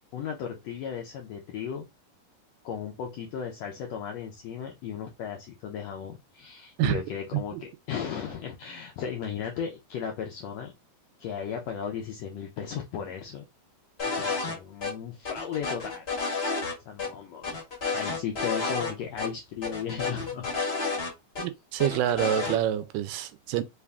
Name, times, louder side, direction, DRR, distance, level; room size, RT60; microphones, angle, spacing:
voice 1, 0.1-1.9 2.6-10.7 11.2-13.4 14.0-16.1 16.9-17.6 17.9-20.5, left 7 dB, 85° left, 1.4 m, -35 dB
sound 1, 14.0-14.5 14.8-14.9 15.2-16.7 17.0-17.1 17.4-18.9 19.2-19.3 19.6-21.4 21.8-22.6, left 4 dB, 60° left, 0.6 m, -30 dB
voice 2, 21.4-23.6, right 12 dB, 85° right, 2.1 m, -27 dB
5.3 x 2.4 x 3.4 m
omnidirectional pair, 3.7 m